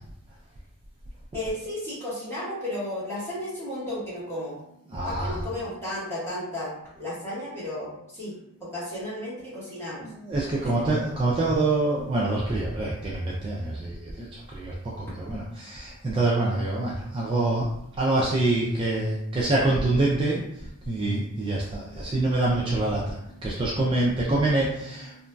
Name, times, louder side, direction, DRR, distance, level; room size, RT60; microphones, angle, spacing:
voice 1, 1.3-4.5 5.0-6.7 7.0-8.3 8.6-10.1 10.6-10.8, left 1 dB, 10° left, -11 dB, 1.4 m, -33 dB
voice 2, 4.9-5.4 10.0-17.7 18.0-20.4 20.8-25.2, right 2 dB, 25° right, -5 dB, 0.3 m, -26 dB
2.9 x 2.5 x 2.2 m, 0.78 s
head